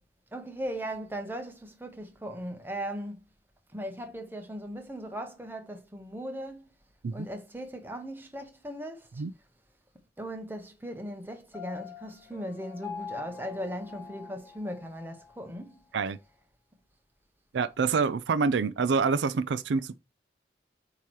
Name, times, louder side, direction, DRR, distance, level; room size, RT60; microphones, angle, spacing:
voice 1, 0.3-3.2 3.7-6.7 7.1-9.2 10.2-15.8, equal, 10° right, 0.9 m, -38 dB
Piano, 11.5-15.4, left 6 dB, 10° left, 3.2 m, -44 dB
voice 2, 17.5-20.0, right 5 dB, 80° right, 0.4 m, -26 dB
8.3 x 3.0 x 4.6 m
head